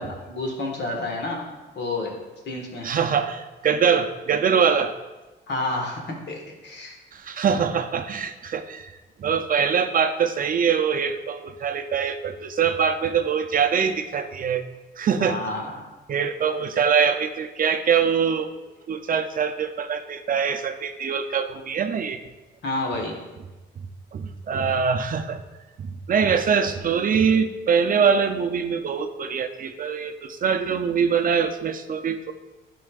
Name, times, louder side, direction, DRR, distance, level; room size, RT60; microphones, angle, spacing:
voice 1, 0.0-1.4 1.8-2.2 2.5-2.9 5.5-6.0 6.3-7.0 15.2-15.9 22.6-23.2, left 2 dB, 60° left, 1 dB, 1.6 m, -29 dB
voice 2, 2.8-4.9 7.1-8.9 9.2-14.6 15.0-15.4 16.1-18.5 18.9-22.2 24.1-25.4 25.8-32.3, right 6 dB, 45° right, 8 dB, 0.5 m, -23 dB
10.5 x 5.5 x 2.4 m, 1.1 s
cardioid pair, 90°, 20 cm